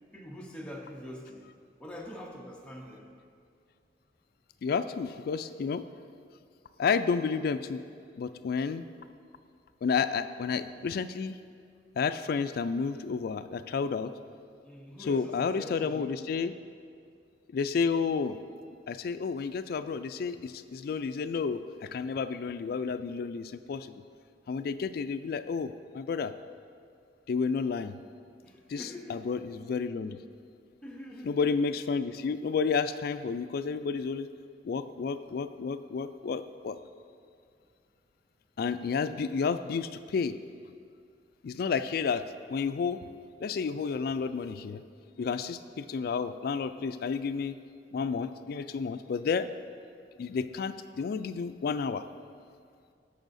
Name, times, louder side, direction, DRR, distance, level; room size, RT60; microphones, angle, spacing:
voice 1, 0.1-1.5 1.8-3.1 14.6-16.2 28.4-29.3 30.8-31.4 45.1-45.5, equal, 5° left, -2 dB, 0.8 m, -44 dB
voice 2, 4.6-5.8 6.8-7.8 8.2-8.9 9.8-11.3 12.0-14.1 15.1-16.5 17.5-18.4 18.9-24.0 24.5-26.3 27.3-28.0 28.7-30.2 31.2-34.3 34.6-36.8 38.6-40.3 41.4-43.0 43.4-44.8 45.2-47.6 47.9-49.5 50.2-52.0, left 5 dB, 55° left, 11 dB, 0.3 m, -31 dB
15.0 x 5.5 x 2.6 m, 2.3 s
head